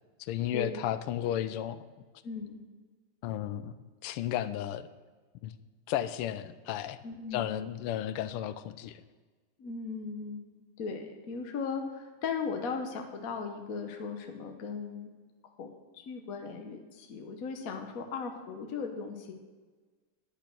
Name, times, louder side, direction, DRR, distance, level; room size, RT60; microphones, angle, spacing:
voice 1, 0.2-1.8 3.2-3.7 4.0-4.9 5.4-5.5 5.9-7.0 7.3-9.0, left 11 dB, 90° left, 13 dB, 1.5 m, -33 dB
voice 2, 2.2-2.7 7.0-7.6 9.6-15.1 15.6-19.3, left 5 dB, 50° left, 4 dB, 1.2 m, -37 dB
10.5 x 8.7 x 6.0 m, 1.4 s
omnidirectional pair, 2.4 m